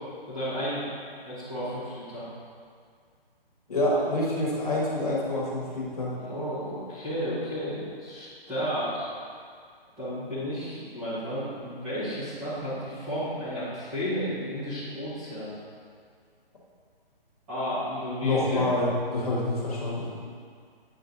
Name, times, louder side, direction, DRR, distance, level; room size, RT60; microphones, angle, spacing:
voice 1, 0.3-0.8 1.2-2.2 6.2-9.1 10.0-15.5 17.5-18.6 20.1-20.2, equal, 5° right, -14 dB, 1.2 m, -32 dB
voice 2, 3.7-6.2 18.2-20.1, left 1 dB, 40° left, -5 dB, 1.5 m, -27 dB
8.7 x 4.2 x 3.9 m, 2.1 s
hypercardioid pair, 175°, 30 cm